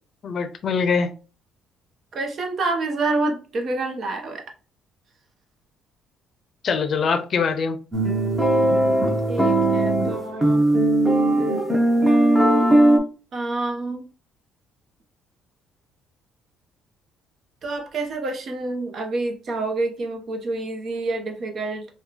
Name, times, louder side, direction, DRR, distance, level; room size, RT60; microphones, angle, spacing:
voice 1, 0.2-1.1 6.6-7.8, left 5 dB, 50° left, 9 dB, 0.5 m, -23 dB
voice 2, 2.1-4.4 9.3-10.7 13.3-14.1 17.6-21.9, right 2 dB, 50° right, 4 dB, 0.8 m, -27 dB
sound 1, 7.9-13.0, right 1 dB, 10° right, 0.8 m, -18 dB
3.0 x 2.3 x 3.7 m, 0.35 s
cardioid pair, 95°, 0 cm